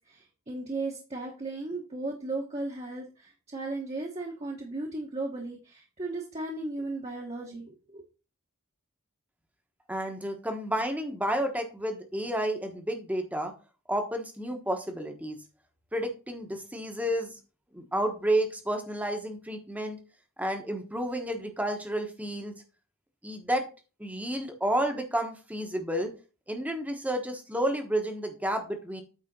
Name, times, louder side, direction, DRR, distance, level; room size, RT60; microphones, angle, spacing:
voice 1, 0.1-8.0, right 2 dB, 30° right, -2 dB, 1.3 m, -36 dB
voice 2, 9.9-13.5 13.9-15.4 15.9-17.3 17.7-20.0 20.4-22.6 23.2-23.6 24.0-26.1 26.5-29.0, right 1 dB, 5° right, 5 dB, 1.2 m, -31 dB
8.9 x 3.6 x 5.3 m, 0.33 s
head